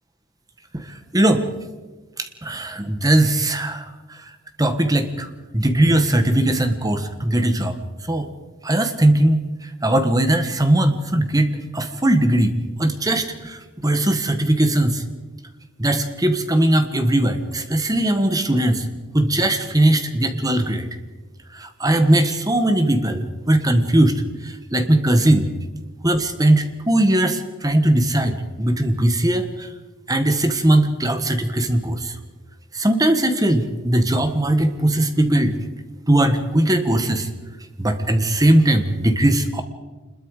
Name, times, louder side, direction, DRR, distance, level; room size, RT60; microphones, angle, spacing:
voice 1, 1.1-1.5 2.2-3.8 4.6-5.3 5.5-7.8 8.1-8.3 8.6-9.4 9.8-12.5 12.8-15.0 15.8-18.8 19.1-20.9 21.5-25.5 26.0-29.7 30.1-32.1 32.7-35.6 36.1-37.3 37.8-39.6, right 1 dB, 20° right, 8 dB, 1.6 m, -19 dB
26.5 x 21.5 x 5.0 m, 1.3 s
head